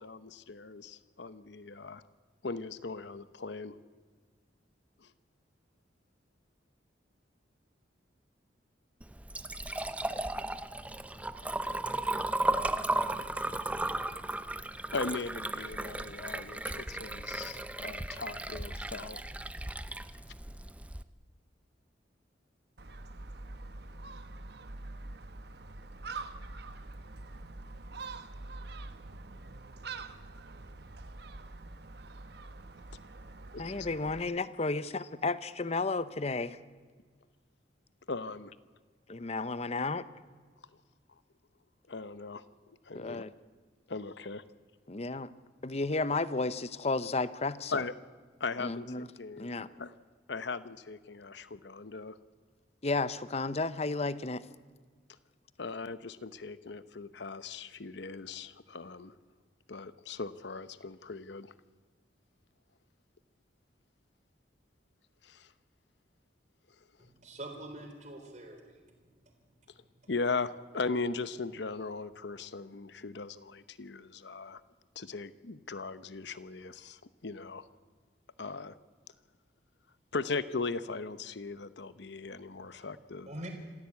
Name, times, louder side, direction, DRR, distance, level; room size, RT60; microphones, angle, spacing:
voice 1, 0.0-2.0 2.4-3.8 5.0-5.1 14.9-19.2 33.5-33.9 38.1-38.5 41.9-43.2 43.9-44.4 47.7-47.9 48.4-49.5 49.8-50.0 50.3-52.2 55.6-59.1 59.7-61.5 65.2-65.5 69.7-69.8 70.1-74.6 74.9-77.7 78.4-78.8 80.1-83.4, left 4 dB, 65° left, 14 dB, 0.9 m, -38 dB
Liquid, 9.0-21.0, right 2 dB, 5° right, 0.6 m, -35 dB
Gull seagull, 22.8-34.2, right 3 dB, 60° right, 1.0 m, -45 dB
voice 2, 33.6-36.6 39.1-40.0 42.9-43.3 44.9-45.3 45.6-47.7 48.6-49.1 49.4-49.7 52.8-54.5, left 3 dB, 35° left, 15 dB, 0.8 m, -32 dB
voice 3, 67.0-68.8 82.7-82.9 83.3-83.5, right 1 dB, 40° right, 4 dB, 3.8 m, -44 dB
26.5 x 15.5 x 8.4 m, 1.5 s
head